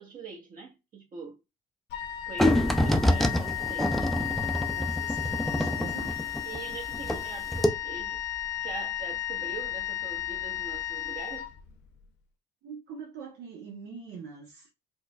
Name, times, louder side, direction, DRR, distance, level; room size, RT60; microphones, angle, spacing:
voice 1, 0.0-1.4 2.3-4.2 6.5-8.2 8.6-11.5, right 5 dB, 55° right, 1.1 m, -43 dB
Wind instrument woodwind instrument, 1.9-12.0, left 12 dB, 85° left, 0.5 m, -34 dB
sound 1, 2.4-7.2 7.5-7.7, left 1 dB, ahead, 0.4 m, -26 dB
voice 2, 4.6-6.2 12.6-14.7, right 6 dB, 80° right, 0.9 m, -44 dB
4.5 x 2.2 x 2.3 m
cardioid pair, 110°, 17 cm